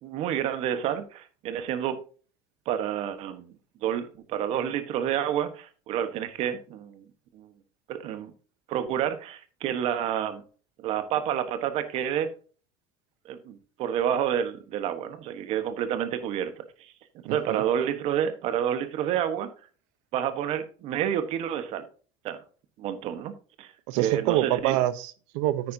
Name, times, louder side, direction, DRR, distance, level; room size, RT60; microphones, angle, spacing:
voice 1, 0.0-2.0 2.7-3.5 3.8-7.0 7.3-7.5 7.9-8.3 8.7-10.4 10.8-12.3 13.2-16.9 17.3-19.5 20.1-21.8 22.2-22.4 22.8-24.8, right 9 dB, 40° right, 1.3 m, -29 dB
voice 2, 17.2-17.6 23.9-25.7, right 14 dB, 60° right, 0.8 m, -26 dB
9.4 x 9.2 x 2.8 m
cardioid pair, 175°, 16 cm